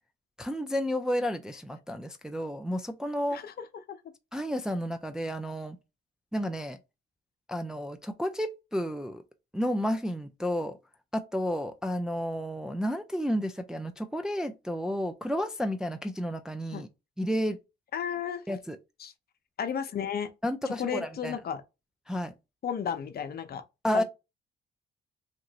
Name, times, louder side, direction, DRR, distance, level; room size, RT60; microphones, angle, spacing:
voice 1, 0.4-3.4 4.3-5.8 6.3-6.8 7.5-9.2 9.5-10.8 11.1-16.9 17.2-17.6 18.5-18.8 20.4-21.4 22.1-22.3 23.8-24.0, equal, 5° right, 0.3 m, -31 dB
voice 2, 17.9-18.4 19.0-19.1 19.6-20.3 20.7-21.6 22.6-23.6 23.9-24.0, left 7 dB, 50° left, 0.6 m, -33 dB
2.9 x 2.5 x 2.7 m
cardioid pair, 90°, 20 cm